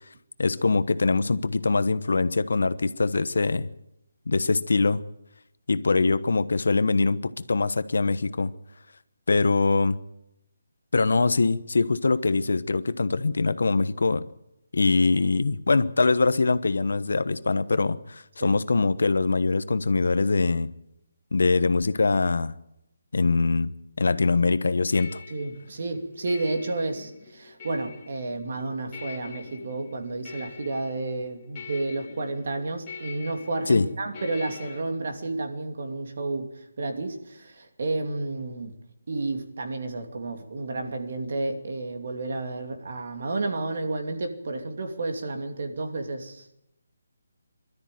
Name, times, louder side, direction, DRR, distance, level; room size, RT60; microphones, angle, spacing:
voice 1, 0.4-3.7 4.3-5.0 5.7-8.5 9.3-10.0 10.9-14.3 14.7-20.7 21.3-22.5 23.1-23.7 24.0-25.2 33.7-33.9, left 3 dB, 65° left, 1.1 m, -23 dB
sound 1, 24.9-34.8, left 5 dB, 20° left, 3.3 m, -44 dB
voice 2, 25.3-38.8 39.1-46.4, right 2 dB, 45° right, 2.7 m, -31 dB
22.0 x 13.0 x 9.3 m
hypercardioid pair, 175°, 0 cm